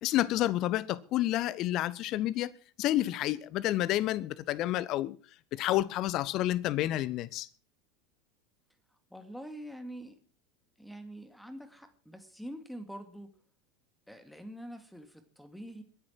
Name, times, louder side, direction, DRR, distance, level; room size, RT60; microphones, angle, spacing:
voice 1, 0.0-2.5 2.8-5.2 5.5-7.5, left 14 dB, 40° left, 0.8 m, -29 dB
voice 2, 9.1-10.2 10.8-13.3 14.1-15.8, equal, ahead, 2.2 m, -45 dB
22.0 x 10.5 x 4.6 m
figure-of-eight pair, 80°, 0 cm